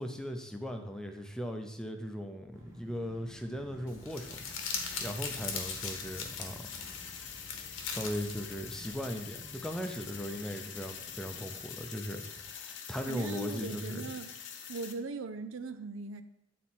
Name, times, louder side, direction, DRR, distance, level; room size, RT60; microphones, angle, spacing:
voice 1, 0.0-4.4 5.0-6.7 7.9-14.1, equal, 5° left, 0.6 m, -38 dB
sound 1, 2.5-11.6, equal, 15° right, 1.0 m, -54 dB
Crumpling crinkling, 3.9-8.9, left 5 dB, 90° left, 1.1 m, -40 dB
sound 2, 4.1-14.9, left 8 dB, 65° left, 0.7 m, -45 dB
voice 2, 13.1-14.3 14.7-16.2, right 3 dB, 85° right, 0.5 m, -39 dB
9.1 x 4.2 x 4.3 m
head